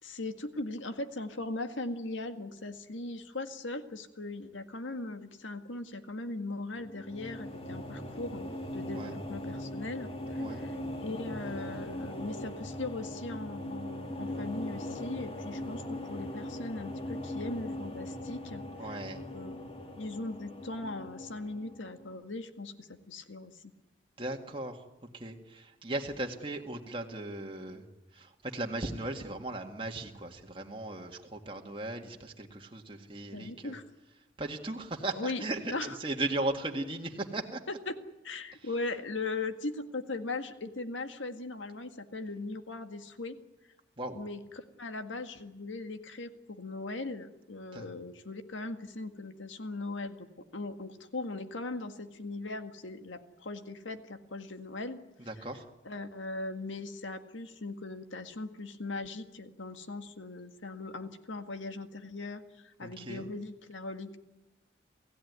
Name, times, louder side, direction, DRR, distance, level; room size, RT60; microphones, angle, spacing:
voice 1, 0.0-10.8 11.0-19.0 19.3-19.6 20.0-23.7 33.3-33.9 35.2-36.0 37.7-38.0 38.2-43.4 44.1-50.3 50.5-55.0 55.9-64.2, left 2 dB, 85° left, 8 dB, 1.8 m, -39 dB
sound 1, 6.7-22.1, left 1 dB, 30° left, 2.5 m, -40 dB
voice 2, 18.8-19.2 24.2-24.8 25.1-27.9 28.1-33.8 34.4-37.6 44.0-44.2 47.7-47.9 55.2-55.7 62.8-63.3, right 2 dB, 25° right, 2 dB, 1.9 m, -37 dB
28.5 x 16.0 x 9.6 m, 1.0 s
head